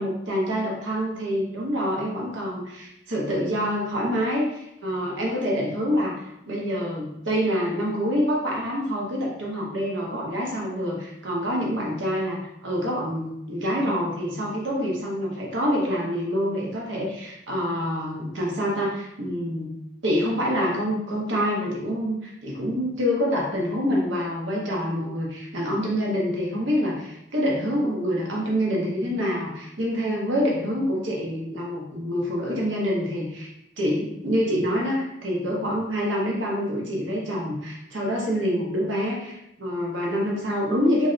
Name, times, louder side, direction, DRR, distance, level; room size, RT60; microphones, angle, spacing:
voice 1, 0.0-19.7 20.0-33.5 33.8-41.1, equal, 85° right, -2 dB, 0.8 m, -26 dB
3.2 x 2.5 x 2.5 m, 0.82 s
head